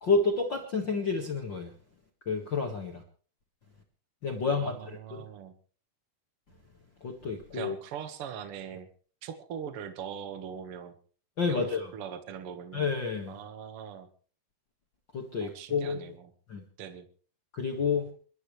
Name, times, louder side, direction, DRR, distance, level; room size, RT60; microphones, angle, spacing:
voice 1, 0.0-1.7 2.2-3.0 4.2-5.2 7.0-7.7 11.4-11.9 12.7-13.4 15.1-16.0 16.5-16.6 17.6-18.1, left 4 dB, 50° left, 1 dB, 1.4 m, -29 dB
voice 2, 4.5-5.5 7.5-8.9 9.2-11.0 11.5-12.8 13.3-14.1 15.4-16.3 16.8-17.1, right 8 dB, 50° right, 8 dB, 1.7 m, -41 dB
28.0 x 12.5 x 3.3 m, 0.42 s
omnidirectional pair, 4.7 m